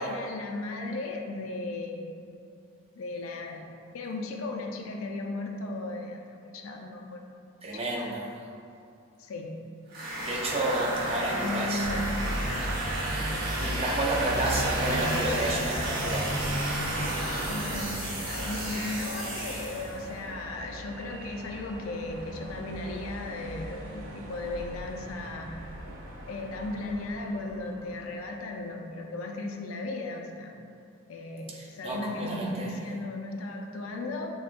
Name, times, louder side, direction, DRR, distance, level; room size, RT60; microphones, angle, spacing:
voice 1, 0.0-2.1 2.9-3.7 3.9-7.4 7.7-8.1 9.2-9.5 11.1-12.2 12.5-12.8 17.4-17.9 18.3-25.8 26.3-30.6 31.1-34.3, left 2 dB, 85° left, 2 dB, 0.4 m, -36 dB
voice 2, 7.6-8.3 10.2-11.9 13.6-16.3 31.5-32.7, right 1 dB, 30° right, -2 dB, 0.4 m, -30 dB
sound 1, 9.9-20.1, right 1 dB, 45° right, 1.1 m, -35 dB
sound 2, 11.8-28.0, right 1 dB, 85° right, 0.6 m, -34 dB
6.0 x 2.2 x 2.5 m, 2.5 s
head